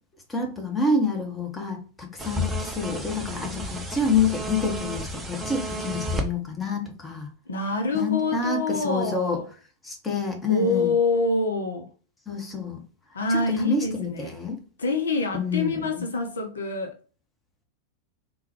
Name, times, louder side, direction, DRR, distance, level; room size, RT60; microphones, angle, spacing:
voice 1, 0.3-7.3 7.9-9.4 9.8-10.9 12.3-12.8 13.3-14.6 15.3-16.1, left 4 dB, 15° left, 0.9 m, -27 dB
sound 1, 2.2-6.3, equal, 10° right, 0.6 m, -31 dB
voice 2, 7.5-9.5 10.5-11.9 13.1-14.3 14.8-17.0, left 3 dB, 70° left, 0.6 m, -26 dB
3.6 x 2.2 x 2.9 m
figure-of-eight pair, 90°, 0 cm